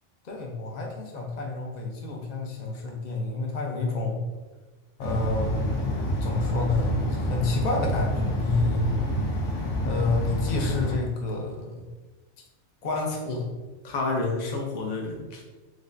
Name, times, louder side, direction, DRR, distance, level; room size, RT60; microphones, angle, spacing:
voice 1, 0.2-4.3 5.0-5.8 6.2-9.0 9.8-11.9 12.8-13.6 13.8-15.4, left 3 dB, 45° left, 1 dB, 0.6 m, -29 dB
sound 1, 5.0-10.9, equal, 65° left, 1.0 m, -28 dB
6.3 x 2.1 x 2.6 m, 1.2 s
omnidirectional pair, 1.4 m